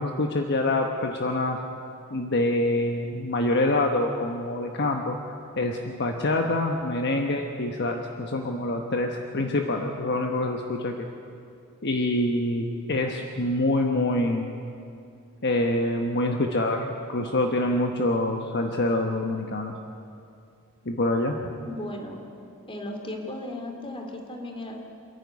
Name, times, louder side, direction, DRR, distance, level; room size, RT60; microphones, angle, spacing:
voice 1, 0.0-1.6 2.1-5.2 5.6-11.1 11.8-14.5 15.4-19.7 20.9-21.4, left 1 dB, 50° left, 3 dB, 1.1 m, -26 dB
voice 2, 21.6-22.2 22.7-24.8, left 1 dB, 25° left, 3 dB, 2.7 m, -36 dB
27.0 x 11.5 x 9.5 m, 2.5 s
head